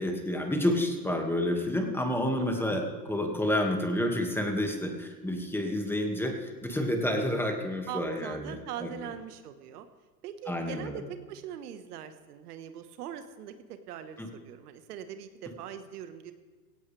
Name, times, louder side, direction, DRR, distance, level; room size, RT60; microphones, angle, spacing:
voice 1, 0.0-8.6 8.8-8.9 10.5-11.0 14.2-14.3, left 1 dB, 5° left, 3 dB, 2.0 m, -29 dB
voice 2, 2.4-2.8 7.9-9.9 10.2-16.3, right 9 dB, 70° right, 9 dB, 1.5 m, -42 dB
17.0 x 16.5 x 3.4 m, 1.4 s
hypercardioid pair, 120°, 48 cm